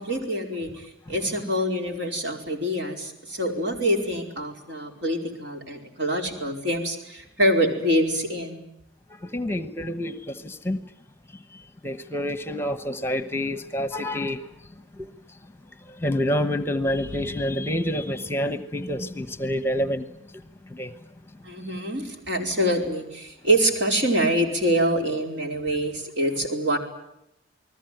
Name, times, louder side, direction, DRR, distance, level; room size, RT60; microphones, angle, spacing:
voice 1, 0.0-8.6 21.4-26.8, right 1 dB, 65° right, 4.9 m, -25 dB
voice 2, 9.2-10.8 11.5-14.5 15.0-15.1 15.9-20.1 20.7-20.9, left 1 dB, 10° left, 1.0 m, -28 dB
sound 1, 16.5-18.4, left 4 dB, 90° right, 5.7 m, -46 dB
29.5 x 20.0 x 9.3 m
head